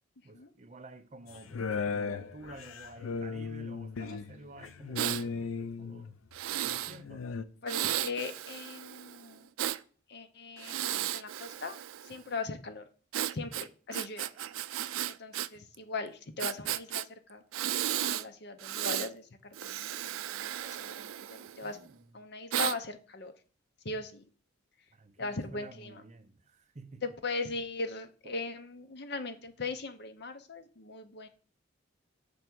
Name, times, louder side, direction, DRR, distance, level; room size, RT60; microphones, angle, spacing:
voice 1, 0.2-6.2 6.6-7.3 21.6-22.1 24.9-27.0 28.2-28.4, right 2 dB, 35° right, 0.6 m, -51 dB
sound 1, 1.3-6.2 6.9-7.4, left 5 dB, 80° left, 0.5 m, -37 dB
Breathing, 5.0-5.2 6.3-7.0 7.7-9.8 10.6-12.2 13.1-15.5 15.7-15.8 16.4-17.0 17.5-18.2 18.6-19.1 19.5-21.7 22.5-22.8, right 12 dB, 85° right, 0.3 m, -34 dB
voice 2, 7.6-9.5 10.1-11.8 12.0-12.8 13.3-14.3 15.1-17.4 18.0-20.5 20.8-21.8 22.1-23.3 23.8-24.2 25.2-26.0 27.0-31.3, left 3 dB, 55° left, 0.8 m, -39 dB
6.9 x 3.4 x 6.1 m
head